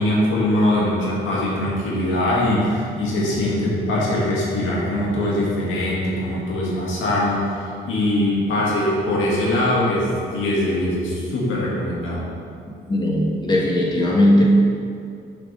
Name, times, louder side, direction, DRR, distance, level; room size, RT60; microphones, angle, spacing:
voice 1, 0.0-12.3, left 1 dB, 85° left, -5 dB, 1.8 m, -22 dB
voice 2, 12.9-14.4, left 1 dB, 20° left, -4 dB, 1.7 m, -18 dB
7.0 x 4.4 x 5.3 m, 2.4 s
cardioid pair, 90°, 20 cm